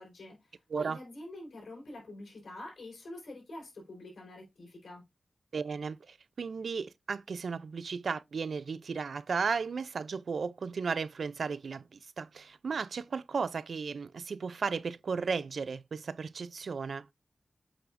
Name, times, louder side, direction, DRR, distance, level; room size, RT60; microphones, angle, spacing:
voice 1, 0.0-5.0, left 1 dB, 90° left, 4.5 m, -46 dB
voice 2, 5.5-17.1, right 5 dB, 80° right, 0.4 m, -35 dB
8.3 x 5.9 x 2.5 m
wide cardioid pair, 70°, 0 cm